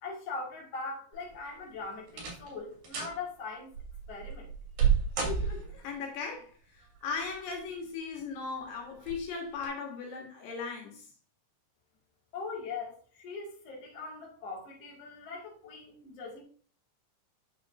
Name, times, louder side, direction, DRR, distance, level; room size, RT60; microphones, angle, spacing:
voice 1, 0.0-3.7 4.1-4.5 12.3-16.4, left 4 dB, 50° left, -3 dB, 3.0 m, -41 dB
sound 1, 1.1-1.6 2.1-2.5 2.8-3.2 3.7-5.9 7.1-7.7 8.2-8.3 9.0-9.2 9.6-9.7, right 7 dB, 80° right, 4.0 m, -31 dB
voice 2, 5.2-11.1, left 5 dB, 80° left, 1 dB, 3.2 m, -38 dB
8.8 x 6.7 x 2.6 m, 0.42 s
omnidirectional pair, 3.9 m